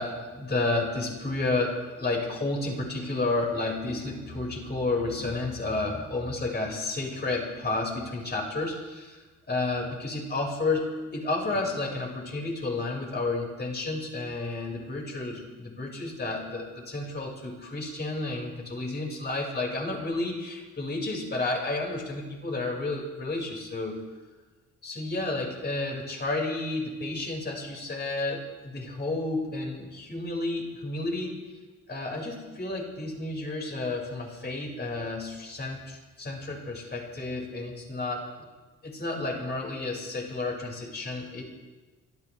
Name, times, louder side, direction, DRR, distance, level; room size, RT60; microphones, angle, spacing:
voice 1, 0.0-24.0 24.8-31.3 31.9-38.3 38.8-41.4, left 2 dB, 35° left, -1 dB, 5.4 m, -31 dB
27.0 x 13.5 x 3.4 m, 1.3 s
cardioid pair, 90°, 30 cm